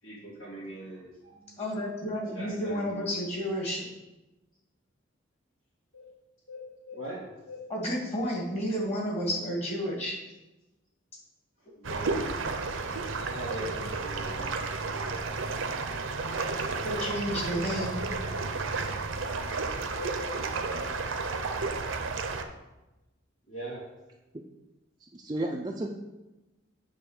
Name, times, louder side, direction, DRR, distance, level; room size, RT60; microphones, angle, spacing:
voice 1, 0.0-1.6 2.3-3.4 5.9-6.1 6.5-7.6 11.8-12.3 13.3-14.6 19.6-20.3 23.5-23.9, equal, 90° left, -9 dB, 2.5 m, -42 dB
voice 2, 1.6-3.9 7.7-10.1 16.8-18.1, equal, 30° left, -2 dB, 2.2 m, -31 dB
sound 1, 11.8-22.4, right 3 dB, 75° right, 0.7 m, -32 dB
voice 3, 25.0-25.9, right 1 dB, 20° right, 0 dB, 0.5 m, -33 dB
9.0 x 3.6 x 6.4 m, 1.0 s
head